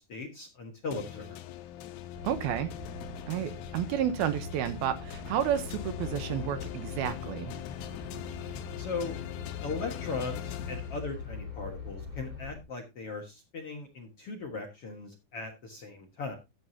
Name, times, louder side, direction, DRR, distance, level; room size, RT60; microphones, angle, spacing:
voice 1, 0.0-1.4 8.8-9.1 9.6-16.3, left 4 dB, 55° left, 1.7 m, -38 dB
sound 1, 0.9-11.5, left 11 dB, 90° left, 3.0 m, -42 dB
sound 2, 2.1-12.6, left 4 dB, 15° right, 1.9 m, -43 dB
voice 2, 2.2-2.7 3.3-7.5, right 10 dB, 75° right, 2.7 m, -31 dB
14.5 x 8.6 x 2.8 m
omnidirectional pair, 4.6 m